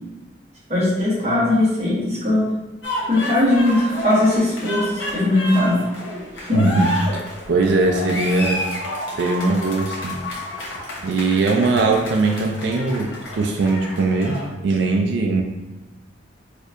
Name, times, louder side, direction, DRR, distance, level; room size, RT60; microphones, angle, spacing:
voice 1, 0.7-2.5 3.1-5.8 6.4-6.8, left 2 dB, 35° right, -7 dB, 1.2 m, -19 dB
sound 1, 2.8-14.5, left 1 dB, 85° left, 0.9 m, -30 dB
voice 2, 6.5-8.7 9.2-10.2 11.0-15.4, right 3 dB, 70° right, 1 dB, 0.4 m, -20 dB
4.3 x 2.6 x 2.5 m, 1.1 s
head